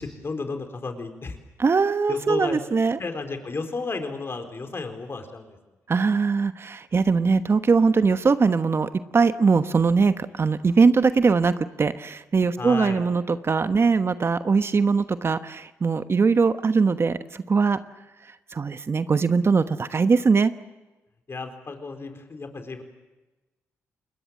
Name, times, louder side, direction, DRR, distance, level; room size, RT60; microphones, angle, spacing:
voice 1, 0.0-1.4 2.1-2.6 3.0-5.6 12.6-13.1 21.3-22.8, left 3 dB, 45° left, 6 dB, 4.2 m, -33 dB
voice 2, 1.6-3.0 5.9-11.5 11.8-17.8 18.5-20.5, right 4 dB, 45° right, 11 dB, 1.1 m, -21 dB
28.0 x 21.5 x 7.7 m, 1.1 s
supercardioid pair, 50°, 6 cm